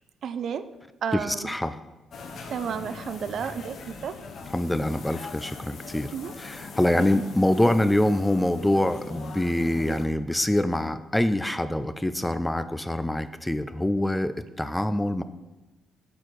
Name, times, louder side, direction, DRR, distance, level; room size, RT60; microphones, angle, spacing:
voice 1, 0.2-0.7 1.0-1.6 2.5-4.1 6.1-6.3 7.0-7.1, right 7 dB, 65° right, 12 dB, 0.4 m, -32 dB
voice 2, 1.1-1.8 4.5-15.2, left 1 dB, 10° left, 12 dB, 0.3 m, -25 dB
sound 1, 2.1-10.1, left 4 dB, 65° left, 0.8 m, -41 dB
6.6 x 4.1 x 4.7 m, 1.1 s
cardioid pair, 90°, 0 cm